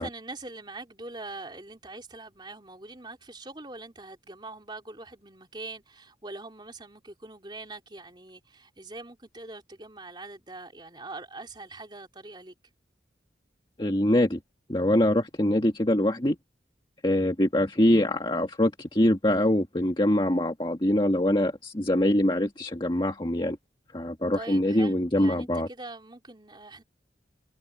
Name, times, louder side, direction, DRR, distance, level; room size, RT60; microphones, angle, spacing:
voice 1, 0.0-12.6 24.3-26.8, right 2 dB, 25° right, 3.4 m, -43 dB
voice 2, 13.8-14.4 14.7-16.4 17.0-23.6 23.9-25.7, left 1 dB, 25° left, 1.7 m, -24 dB
head